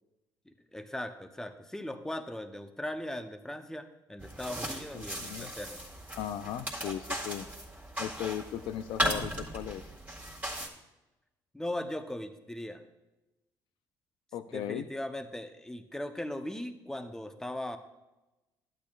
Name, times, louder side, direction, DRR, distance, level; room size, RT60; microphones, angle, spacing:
voice 1, 0.7-5.8 11.5-12.8 14.5-17.8, left 1 dB, 5° left, 8 dB, 0.8 m, -38 dB
sound 1, 4.2-10.7, right 1 dB, 15° right, 1.9 m, -37 dB
voice 2, 4.9-5.5 6.2-7.5 8.0-9.9 14.3-14.9, left 11 dB, 70° left, 11 dB, 0.4 m, -37 dB
11.5 x 8.6 x 2.4 m, 1.0 s
supercardioid pair, 75°, 9 cm